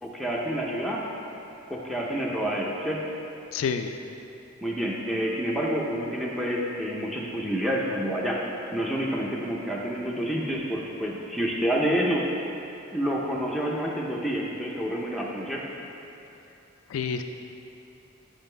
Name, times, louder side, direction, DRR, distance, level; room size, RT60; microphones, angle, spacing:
voice 1, 0.0-1.1 1.7-3.0 4.6-8.4 8.7-12.3 12.9-15.6, equal, ahead, -4 dB, 0.5 m, -28 dB
voice 2, 3.5-3.9 16.9-17.2, left 6 dB, 80° left, 7 dB, 0.3 m, -28 dB
8.8 x 5.1 x 3.2 m, 2.9 s
head